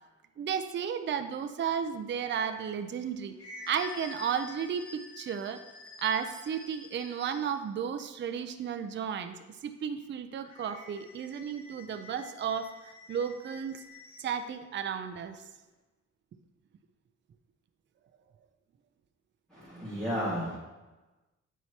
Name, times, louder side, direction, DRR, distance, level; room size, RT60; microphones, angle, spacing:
voice 1, 0.4-3.3 3.7-5.6 6.0-9.3 9.6-12.7 13.1-13.8 14.2-15.4, right 7 dB, 40° right, 8 dB, 0.4 m, -33 dB
sound 1, 2.9-7.7 10.4-14.4, left 3 dB, 50° left, 1.0 m, -49 dB
voice 2, 19.5-20.6, equal, ahead, -11 dB, 1.8 m, -33 dB
8.1 x 4.4 x 2.8 m, 1.1 s
wide cardioid pair, 125°, 29 cm